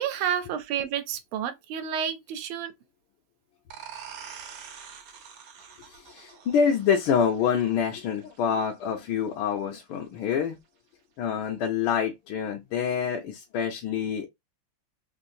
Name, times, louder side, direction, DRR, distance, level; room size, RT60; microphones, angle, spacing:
voice 1, 0.0-2.7, right 9 dB, 90° right, 1.5 m, -30 dB
sound 1, 3.7-9.1, right 7 dB, 65° right, 0.9 m, -46 dB
voice 2, 5.9-10.6 11.2-14.3, left 7 dB, 80° left, 1.5 m, -26 dB
3.8 x 2.5 x 2.6 m
omnidirectional pair, 2.3 m